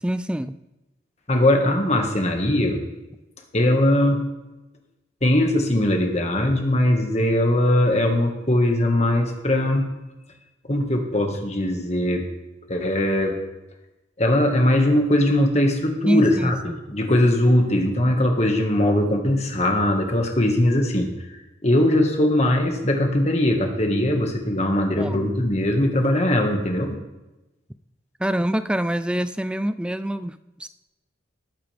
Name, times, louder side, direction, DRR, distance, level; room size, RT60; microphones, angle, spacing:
voice 1, 0.0-0.5 16.1-16.8 25.0-25.3 28.2-30.7, right 1 dB, 5° right, 13 dB, 0.4 m, -25 dB
voice 2, 1.3-2.8 3.5-4.2 5.2-9.9 10.7-12.2 12.7-13.3 14.2-16.5 16.9-21.1 21.6-27.0, left 1 dB, 35° left, 3 dB, 1.7 m, -20 dB
19.5 x 8.8 x 3.5 m, 1.0 s
head